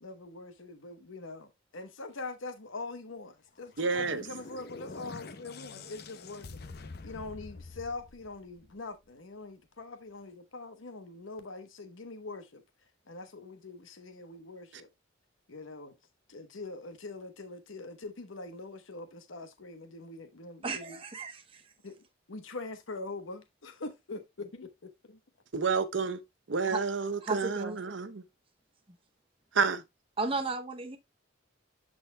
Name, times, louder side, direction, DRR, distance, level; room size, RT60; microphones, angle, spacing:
voice 1, 0.0-12.6 13.1-14.9 15.5-16.0 16.3-21.0 21.8-22.0 22.3-25.2, left 3 dB, 85° left, 1.0 m, -43 dB
sound 1, 3.6-8.9, left 3 dB, 50° left, 0.7 m, -46 dB
voice 2, 3.8-4.2 25.5-26.2 26.5-28.2 29.5-29.8, right 5 dB, 70° right, 0.8 m, -29 dB
voice 3, 20.6-21.6 26.7-26.8 27.2-27.8 30.2-31.0, right 3 dB, 30° right, 0.7 m, -34 dB
12.0 x 4.1 x 2.2 m
head